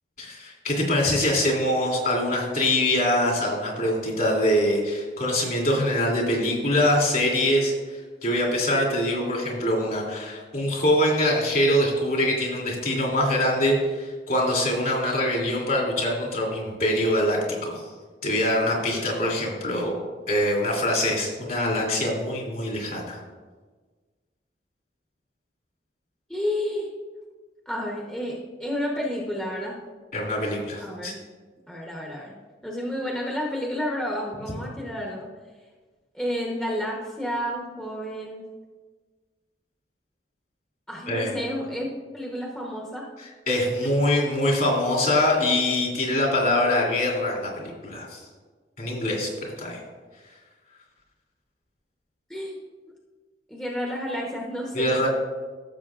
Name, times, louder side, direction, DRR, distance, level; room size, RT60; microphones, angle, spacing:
voice 1, 0.2-17.8 18.2-20.0 20.3-23.2 30.1-31.1 41.1-41.3 43.5-48.2 48.8-49.8 54.7-55.1, left 1 dB, 55° left, -2 dB, 2.8 m, -24 dB
voice 2, 26.3-26.9 27.7-29.8 30.8-31.2 31.7-32.3 32.6-35.3 36.1-38.4 40.9-41.9 42.1-43.1 52.3-52.6 53.5-55.1, equal, 5° left, -3 dB, 1.0 m, -30 dB
14.5 x 7.0 x 2.5 m, 1.4 s
head